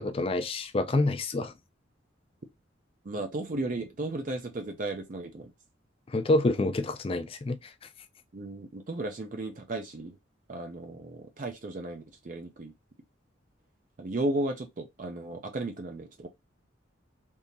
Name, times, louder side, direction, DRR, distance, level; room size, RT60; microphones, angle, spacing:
voice 1, 0.0-1.5 6.1-7.6, left 2 dB, 30° left, 0.4 m, -27 dB
voice 2, 3.0-5.5 8.3-10.2 10.5-12.7 14.0-16.3, right 2 dB, 40° right, 0.5 m, -34 dB
3.6 x 2.8 x 2.6 m
head